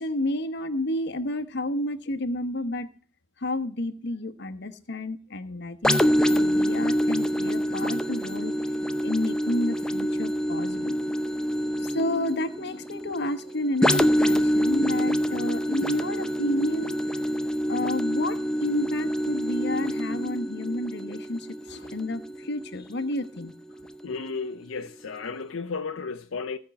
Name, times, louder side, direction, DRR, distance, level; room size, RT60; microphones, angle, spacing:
voice 1, 0.0-2.9 3.4-6.0 6.3-8.7 9.0-11.0 11.8-17.0 17.7-23.5, left 1 dB, 60° left, 1.1 m, -30 dB
sound 1, 5.8-23.4 23.9-24.0, equal, 5° left, 0.7 m, -26 dB
voice 2, 24.0-26.6, left 4 dB, 80° left, 0.7 m, -33 dB
16.0 x 5.4 x 7.0 m
head